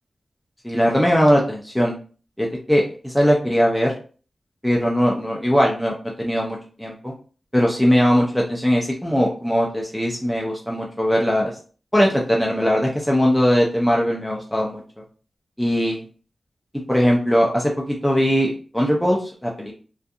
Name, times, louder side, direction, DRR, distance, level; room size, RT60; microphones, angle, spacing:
voice 1, 0.6-1.9 2.4-3.9 4.6-7.1 7.5-11.5 11.9-14.8 15.6-16.0 16.9-19.7, equal, ahead, -2 dB, 0.4 m, -20 dB
2.5 x 2.3 x 2.6 m, 0.39 s
wide cardioid pair, 130°, 0 cm